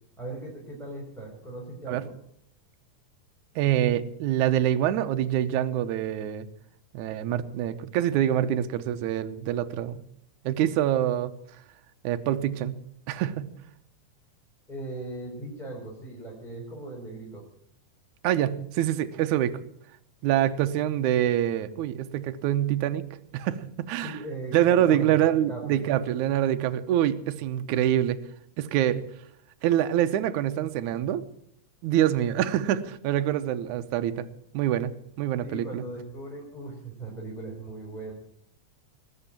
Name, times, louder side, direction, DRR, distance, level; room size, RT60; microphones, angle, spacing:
voice 1, 0.2-2.1 14.7-17.4 24.0-24.6 24.9-25.2 25.5-26.1 35.4-38.1, right 2 dB, ahead, -2 dB, 3.6 m, -38 dB
voice 2, 3.6-6.5 6.9-10.0 10.5-11.3 12.0-12.8 13.1-13.5 18.2-19.6 20.2-23.0 23.3-24.2 24.5-28.2 28.6-29.0 29.6-31.2 31.8-34.3 34.5-34.9 35.2-35.8, right 11 dB, 75° right, 11 dB, 2.2 m, -25 dB
20.5 x 8.2 x 8.7 m, 0.71 s
omnidirectional pair, 3.7 m